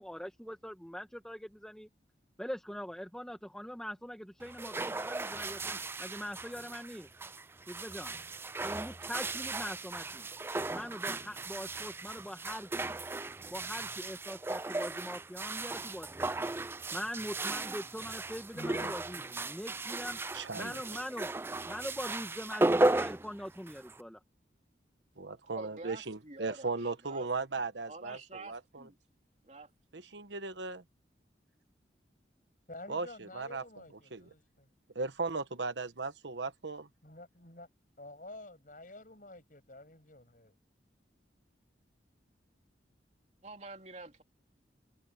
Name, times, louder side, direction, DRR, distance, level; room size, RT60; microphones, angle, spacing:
voice 1, 0.0-1.9 2.4-7.1 7.7-8.1 8.6-10.3 10.7-13.0 13.5-16.5 16.9-20.2 20.5-21.3 21.7-24.2, equal, 5° left, 1.5 m, -42 dB
sound 1, 4.4-24.0, right 2 dB, 15° right, 0.3 m, -36 dB
voice 2, 18.5-19.5 32.7-34.7 37.0-37.7 38.0-40.5, left 1 dB, 50° left, 6.9 m, -50 dB
voice 3, 20.3-20.8 25.2-28.9 29.9-30.8 32.9-33.6 34.1-34.2 34.9-36.9, right 3 dB, 85° right, 1.2 m, -37 dB
voice 4, 25.6-27.3 27.9-29.0 29.4-29.7 43.4-44.2, right 2 dB, 40° right, 3.2 m, -47 dB
head